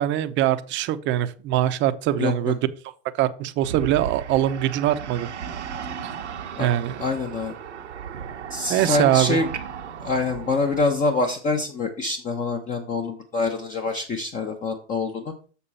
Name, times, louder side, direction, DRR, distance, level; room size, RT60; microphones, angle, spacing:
voice 1, 0.0-2.6 3.2-5.3 6.0-6.1 6.6-7.0 8.7-9.4, right 12 dB, 35° right, 0.7 m, -22 dB
voice 2, 2.2-2.5 6.6-6.7 7.0-7.6 8.5-9.5 10.0-15.3, left 3 dB, 25° left, 0.9 m, -25 dB
sound 1, 3.6-10.9, right 7 dB, 90° right, 1.2 m, -35 dB
7.0 x 6.6 x 4.2 m
hypercardioid pair, 110°, 34 cm